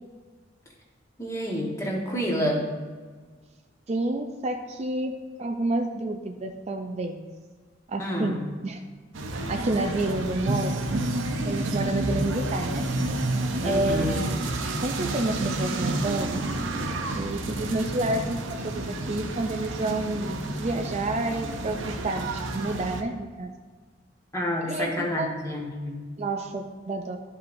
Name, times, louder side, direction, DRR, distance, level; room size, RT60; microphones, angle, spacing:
voice 1, 1.2-2.7 8.0-8.4 13.6-14.2 24.3-26.0, equal, 15° left, -2 dB, 1.4 m, -29 dB
voice 2, 3.9-7.2 7.9-8.8 9.5-10.8 11.5-12.8 13.6-14.3 14.8-16.4 17.2-22.3 22.5-23.5 24.6-25.4 26.2-27.2, right 2 dB, 35° right, 4 dB, 0.4 m, -29 dB
sound 1, 9.1-23.0, right 2 dB, 80° right, 0.7 m, -30 dB
12.0 x 5.5 x 2.6 m, 1.5 s
head